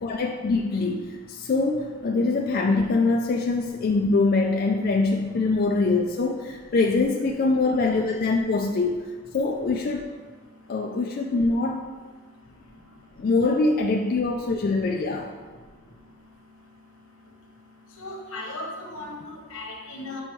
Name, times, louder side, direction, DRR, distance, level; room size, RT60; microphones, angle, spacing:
voice 1, 0.0-9.0 9.3-10.0 10.7-11.9 13.2-15.3, left 3 dB, 45° left, 1 dB, 0.3 m, -23 dB
voice 2, 18.0-20.2, left 2 dB, 90° left, -1 dB, 1.1 m, -36 dB
7.6 x 4.3 x 3.1 m, 1.4 s
head